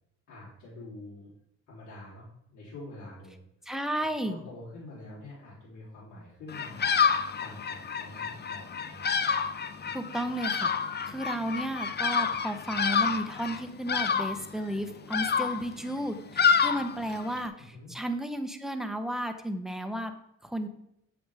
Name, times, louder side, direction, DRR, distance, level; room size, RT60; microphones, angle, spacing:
voice 1, 0.3-1.3 1.7-3.5 4.2-6.9 7.4-9.0 17.6-17.9, left 2 dB, 75° left, -8 dB, 3.6 m, -46 dB
voice 2, 3.7-4.4 9.9-10.7 11.1-20.1 20.4-20.7, right 1 dB, ahead, 6 dB, 1.0 m, -33 dB
Bird vocalization bird call bird song, 6.5-17.5, left 6 dB, 35° left, 0.7 m, -29 dB
8.6 x 7.2 x 3.5 m, 0.77 s
cardioid pair, 90°, 30 cm